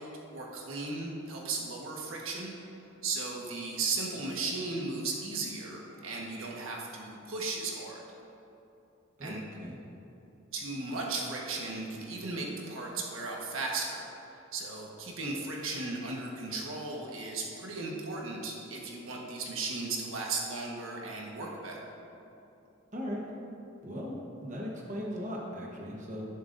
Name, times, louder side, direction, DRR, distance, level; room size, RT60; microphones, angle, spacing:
voice 1, 0.0-2.5 3.0-8.0 9.2-9.4 10.5-14.0 14.5-21.9, right 3 dB, 75° right, -2 dB, 1.4 m, -36 dB
voice 2, 9.2-9.8 22.9-23.2 23.8-24.2 24.4-26.2, equal, 35° right, -2 dB, 1.1 m, -38 dB
11.0 x 11.0 x 2.6 m, 2.9 s
head